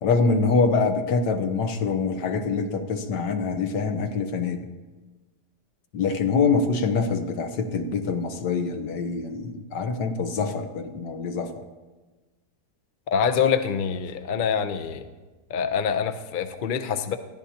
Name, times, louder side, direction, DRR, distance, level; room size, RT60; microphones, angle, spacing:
voice 1, 0.0-4.7 5.9-11.6, left 4 dB, 80° left, 7 dB, 1.7 m, -25 dB
voice 2, 13.1-15.0 15.5-17.2, left 7 dB, 50° left, 8 dB, 0.6 m, -25 dB
21.5 x 14.5 x 2.9 m, 1.3 s
omnidirectional pair, 1.8 m